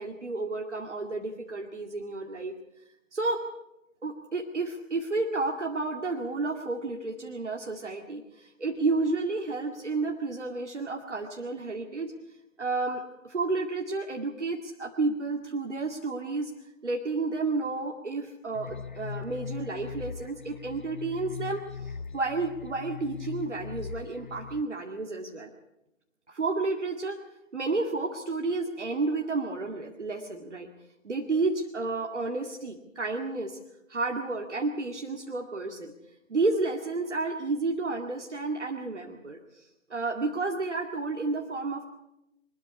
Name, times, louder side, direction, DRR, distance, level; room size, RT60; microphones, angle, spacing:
voice 1, 0.0-2.5 3.1-3.4 4.0-12.1 12.6-16.5 16.8-25.5 26.3-27.2 27.5-30.7 31.0-33.6 33.9-35.9 36.3-41.8, right 3 dB, 60° right, 2 dB, 2.3 m, -31 dB
sound 1, 18.5-24.6, left 7 dB, 35° left, 0.7 m, -40 dB
23.5 x 13.0 x 9.9 m, 0.89 s
figure-of-eight pair, 150°, 39 cm